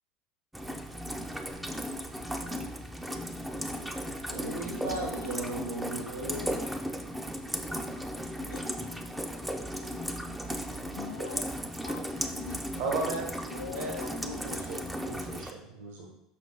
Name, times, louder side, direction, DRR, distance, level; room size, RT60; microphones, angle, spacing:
Rain, 0.5-15.5, equal, 5° right, 0.7 m, -36 dB
voice 1, 4.0-6.6, right 2 dB, 80° right, -4 dB, 1.1 m, -37 dB
voice 2, 8.4-8.7 9.7-9.9 10.9-11.4 11.8-12.8 13.5-14.7, left 7 dB, 75° left, 2 dB, 0.4 m, -43 dB
voice 3, 12.8-16.1, right 3 dB, 60° right, 1 dB, 1.4 m, -37 dB
6.0 x 5.9 x 4.0 m, 0.80 s
figure-of-eight pair, 70°, 0 cm